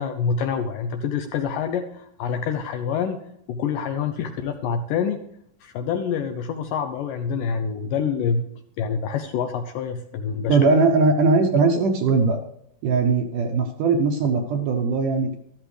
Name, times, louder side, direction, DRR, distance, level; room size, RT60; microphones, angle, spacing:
voice 1, 0.0-3.2 3.5-5.2 5.6-8.4 8.8-10.7, left 6 dB, 80° left, 7 dB, 2.0 m, -26 dB
voice 2, 10.5-12.4 12.8-15.4, right 4 dB, 70° right, 4 dB, 2.0 m, -20 dB
13.5 x 13.0 x 3.3 m, 0.74 s
omnidirectional pair, 4.6 m